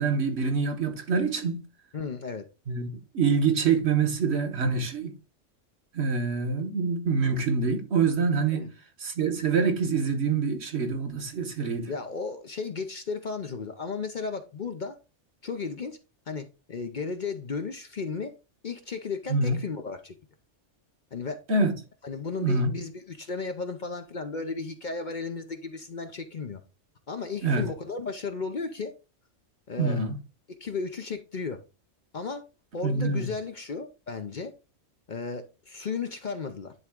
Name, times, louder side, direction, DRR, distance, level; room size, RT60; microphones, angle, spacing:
voice 1, 0.0-1.6 2.7-2.9 3.1-5.1 5.9-8.7 9.0-11.9 19.3-19.6 21.5-21.7 22.4-22.7 27.4-27.7 29.8-30.2 32.8-33.3, right 4 dB, 60° right, 1.4 m, -25 dB
voice 2, 1.9-2.5 8.5-8.7 11.9-15.0 15.4-16.0 16.3-18.3 18.6-20.1 21.1-21.4 22.0-26.6 27.1-28.9 29.7-30.0 30.5-31.6 32.1-32.4 32.7-34.5 35.1-36.7, left 4 dB, 45° left, 0.8 m, -34 dB
10.5 x 3.6 x 3.6 m
omnidirectional pair, 1.2 m